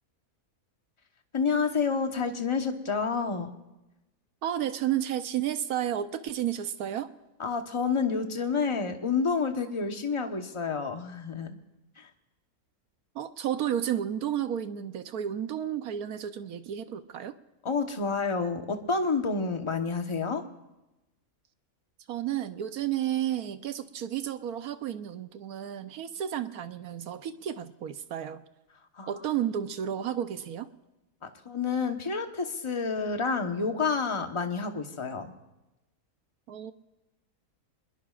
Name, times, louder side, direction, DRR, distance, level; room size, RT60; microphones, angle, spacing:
voice 1, 1.3-3.5 7.4-11.6 12.0-12.1 17.6-20.4 29.0-29.1 31.2-35.3, left 5 dB, 25° left, 5 dB, 1.0 m, -29 dB
voice 2, 4.4-7.1 13.1-17.3 22.1-28.4 29.0-30.7 36.5-36.7, right 10 dB, 85° right, 10 dB, 1.3 m, -32 dB
26.5 x 21.0 x 2.5 m, 0.99 s
omnidirectional pair, 1.6 m